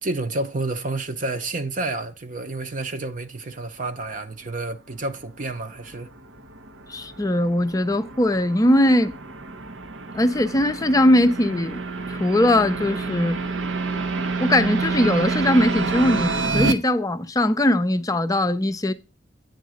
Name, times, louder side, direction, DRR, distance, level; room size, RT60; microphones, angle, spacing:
voice 1, 0.0-6.1, right 2 dB, 45° right, 0.8 m, -29 dB
sound 1, 5.2-16.7, right 3 dB, 85° right, 0.9 m, -28 dB
voice 2, 6.9-9.1 10.1-11.8 12.1-13.4 14.4-18.9, left 1 dB, 20° left, 0.4 m, -20 dB
9.3 x 3.8 x 6.3 m
head